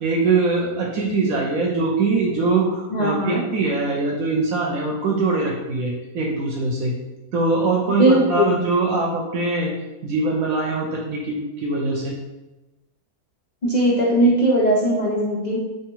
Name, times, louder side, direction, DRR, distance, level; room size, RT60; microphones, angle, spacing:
voice 1, 0.0-6.9 7.3-9.7 10.0-12.1, right 3 dB, 70° right, -2 dB, 0.9 m, -22 dB
voice 2, 2.9-3.4 7.9-8.7 13.6-15.6, right 1 dB, 85° left, -5 dB, 0.3 m, -19 dB
3.5 x 3.1 x 3.0 m, 1.0 s
omnidirectional pair, 1.6 m